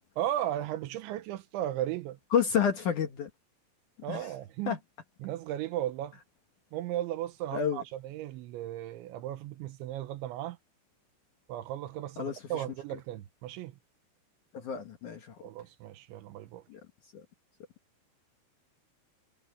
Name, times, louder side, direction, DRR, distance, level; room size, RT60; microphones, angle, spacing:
voice 1, 0.2-2.2 4.0-4.8 5.2-6.2 6.7-10.6 11.5-13.7 15.4-16.6, right 13 dB, 85° right, 3.3 m, -36 dB
voice 2, 2.3-3.3 4.1-4.3 4.7-4.8 7.5-7.8 12.2-12.6 14.5-15.2 16.7-16.8, left 7 dB, 60° left, 2.3 m, -29 dB
omnidirectional pair, 5.4 m